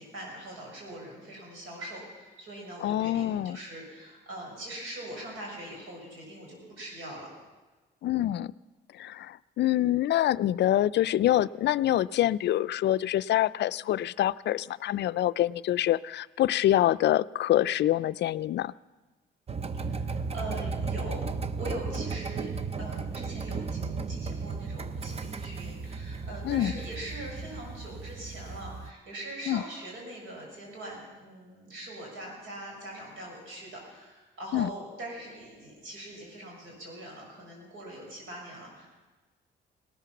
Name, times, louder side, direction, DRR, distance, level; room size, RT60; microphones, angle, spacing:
voice 1, 0.0-7.3 19.8-21.3 21.5-22.5 22.8-38.9, right 1 dB, 85° right, -1 dB, 6.5 m, -42 dB
voice 2, 2.8-3.6 8.0-8.5 8.9-18.7 26.4-26.7 29.5-29.6 34.5-34.7, left 13 dB, 60° left, 16 dB, 0.4 m, -26 dB
sound 1, 19.5-28.9, right 4 dB, 30° right, 0.6 m, -35 dB
18.5 x 13.0 x 5.9 m, 1.2 s
cardioid pair, 90°, 20 cm